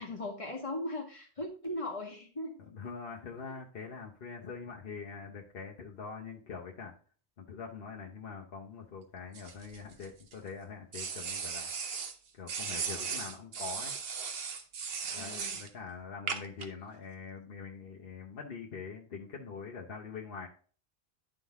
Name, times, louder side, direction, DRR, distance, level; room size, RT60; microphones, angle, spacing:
voice 1, 0.0-2.6 3.5-3.6 15.1-15.6, left 1 dB, 35° left, -1 dB, 1.8 m, -38 dB
voice 2, 2.7-6.9 7.5-11.7 12.4-13.9 15.1-20.5, left 5 dB, 65° left, -1 dB, 1.1 m, -44 dB
sound 1, 9.3-10.3 10.9-12.1 12.5-15.7 16.3-16.7, right 6 dB, 75° right, 1.1 m, -37 dB
11.5 x 3.8 x 3.6 m, 0.41 s
omnidirectional pair, 1.0 m